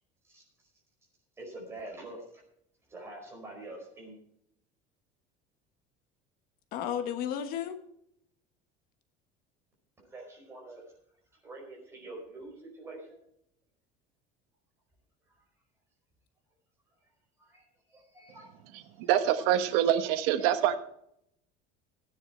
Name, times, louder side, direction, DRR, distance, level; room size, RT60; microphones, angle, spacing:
voice 1, 1.4-2.4 2.9-4.2 10.0-10.8 11.4-13.1 15.4-15.5 17.4-18.5 19.3-19.6 19.9-20.0 20.4-20.7, right 2 dB, 15° right, -1 dB, 4.8 m, -46 dB
voice 2, 6.7-7.8, left 9 dB, 50° left, 8 dB, 1.2 m, -33 dB
voice 3, 19.0-20.8, right 11 dB, 85° right, 9 dB, 1.3 m, -25 dB
15.5 x 9.9 x 4.4 m, 0.73 s
cardioid pair, 175°, 19 cm